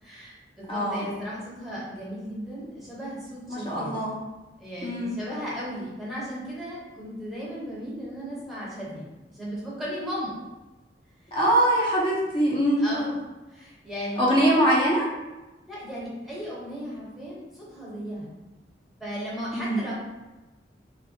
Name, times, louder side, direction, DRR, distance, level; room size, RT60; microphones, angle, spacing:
voice 1, 0.0-4.0 4.6-10.3 12.8-13.2 13.5-14.3 15.7-18.3 19.0-19.9, equal, ahead, -7 dB, 0.7 m, -36 dB
voice 2, 0.7-1.0 3.5-4.1 4.8-5.1 11.3-12.9 14.2-15.1 19.5-19.8, right 1 dB, 30° left, -5 dB, 0.4 m, -23 dB
2.4 x 2.1 x 2.6 m, 1.1 s
head